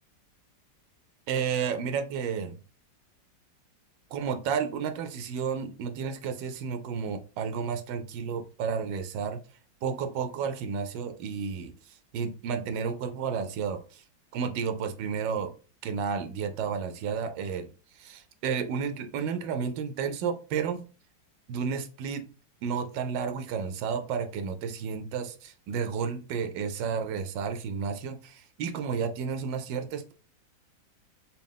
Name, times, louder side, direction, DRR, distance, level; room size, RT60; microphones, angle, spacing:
voice 1, 1.3-2.6 4.1-9.4 9.8-14.0 14.3-15.5 15.8-17.7 17.9-20.8 21.5-22.3 22.6-30.1, right 6 dB, 80° right, 8 dB, 1.3 m, -32 dB
4.3 x 2.3 x 3.5 m, 0.36 s
omnidirectional pair, 2.0 m